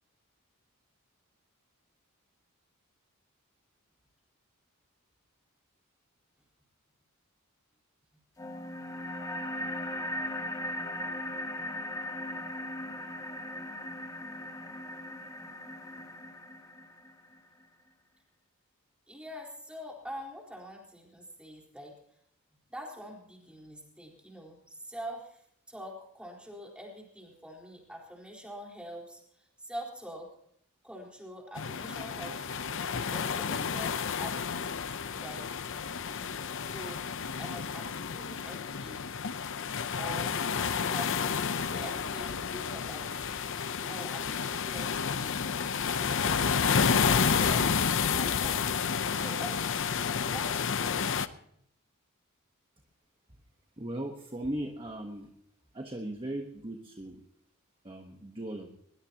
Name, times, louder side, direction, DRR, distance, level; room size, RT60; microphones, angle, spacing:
sound 1, 8.4-17.4, left 1 dB, 15° left, 1.3 m, -38 dB
voice 1, 19.1-21.9 22.7-25.4 25.7-30.3 30.8-32.8 33.1-34.8 35.2-36.3 36.6-37.0 37.4-39.0 40.0-40.3 40.6-41.3 41.7-43.5 43.9-45.4 45.8-48.6 49.1-49.7 50.0-51.2, equal, 5° right, -2 dB, 4.3 m, -45 dB
sound 2, 31.6-51.3, left 6 dB, 60° left, 0.7 m, -30 dB
voice 2, 53.8-55.3 55.7-57.2 57.8-58.7, right 1 dB, 25° right, 3 dB, 1.2 m, -38 dB
21.5 x 19.5 x 2.9 m, 0.70 s
head